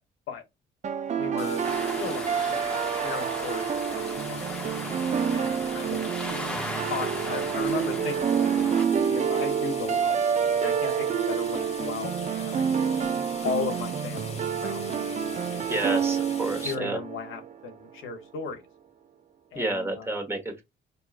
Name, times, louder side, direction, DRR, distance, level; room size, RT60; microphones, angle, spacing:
sound 1, 0.8-17.7, right 7 dB, 35° right, 0.5 m, -28 dB
voice 1, 1.1-1.6 2.0-2.6 2.9-4.5 5.3-6.0 6.3-6.6 6.9-8.6 9.1-10.2 10.5-12.8 13.4-15.2 15.5-16.1 16.6-18.6 19.5-20.2, left 5 dB, 80° left, 0.9 m, -36 dB
sound 2, 1.4-16.7, left 3 dB, 30° left, 1.0 m, -43 dB
sound 3, 1.6-8.9, equal, 5° left, 0.7 m, -37 dB
voice 2, 15.7-17.0 19.5-20.6, right 2 dB, 10° right, 1.2 m, -30 dB
4.7 x 2.7 x 2.4 m
cardioid pair, 90°, 20 cm